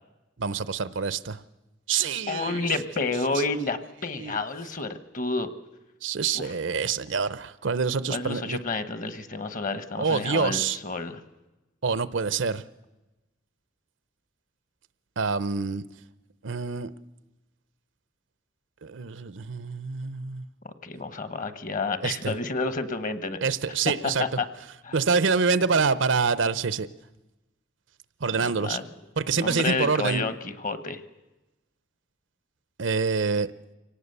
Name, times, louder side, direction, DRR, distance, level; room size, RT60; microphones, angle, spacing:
voice 1, 0.4-1.4 1.9-2.7 4.2-4.4 6.0-8.6 10.0-10.8 11.8-12.6 15.2-15.8 16.4-16.9 18.8-20.4 22.0-22.3 23.4-24.2 24.9-26.9 28.2-28.8 29.2-30.3 32.8-33.5, right 5 dB, 80° right, 16 dB, 0.7 m, -26 dB
voice 2, 2.3-5.5 6.3-6.5 8.1-11.2 20.6-23.4 24.2-24.5 24.8-25.0 28.3-28.9 29.3-31.0, left 3 dB, 45° left, 11 dB, 1.2 m, -30 dB
24.5 x 18.0 x 6.8 m, 1.0 s
head